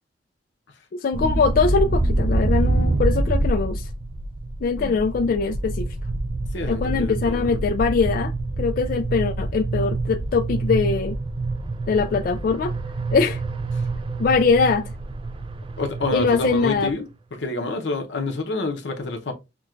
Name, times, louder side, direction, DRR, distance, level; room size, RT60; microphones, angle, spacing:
voice 1, 0.9-3.9 4.6-5.9 6.6-11.2 11.9-12.7 13.1-13.4 14.2-14.9 16.1-16.9, left 4 dB, 50° left, 0.3 m, -22 dB
sound 1, 1.1-17.0, right 2 dB, 30° right, 0.3 m, -26 dB
voice 2, 6.5-7.6 15.8-17.1 17.4-19.3, left 3 dB, 90° left, 0.8 m, -28 dB
6.0 x 2.2 x 2.4 m
head